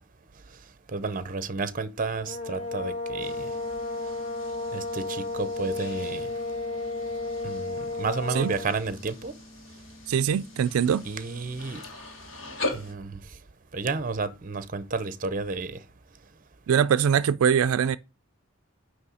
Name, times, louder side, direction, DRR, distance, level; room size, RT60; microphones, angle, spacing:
voice 1, 0.9-3.5 4.7-6.3 7.4-9.3 11.0-11.8 12.7-13.2 13.7-15.8, right 4 dB, 40° right, 0.7 m, -31 dB
sound 1, 2.1-8.8, left 2 dB, 30° left, 1.1 m, -33 dB
sound 2, 3.2-12.9, left 2 dB, 60° left, 2.0 m, -41 dB
voice 2, 10.1-11.0 16.7-18.0, right 7 dB, 85° right, 0.3 m, -22 dB
9.5 x 3.2 x 6.2 m
head